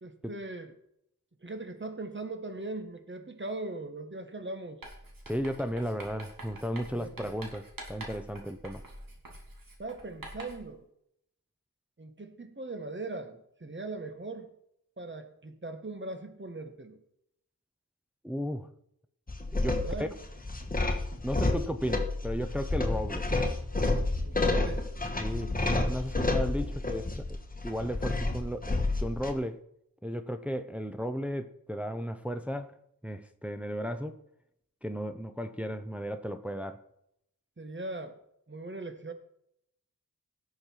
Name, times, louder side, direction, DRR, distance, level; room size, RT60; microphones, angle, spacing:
voice 1, 0.0-0.7 1.4-4.8 6.9-7.3 9.8-10.9 12.0-14.5 15.0-17.0 19.8-20.1 24.2-24.9 37.6-38.2 38.5-39.1, right 2 dB, 35° right, 1.5 m, -40 dB
Writing, 4.8-10.7, right 1 dB, 75° right, 2.8 m, -46 dB
voice 2, 5.3-8.8 18.2-18.7 19.5-20.1 21.2-23.3 25.2-27.4 27.6-29.6 30.0-32.7 33.0-34.2 34.8-36.8, equal, 5° right, 0.7 m, -34 dB
sound 1, 19.3-29.3, left 2 dB, 25° left, 1.6 m, -30 dB
17.0 x 6.7 x 4.7 m
wide cardioid pair, 75°, 34 cm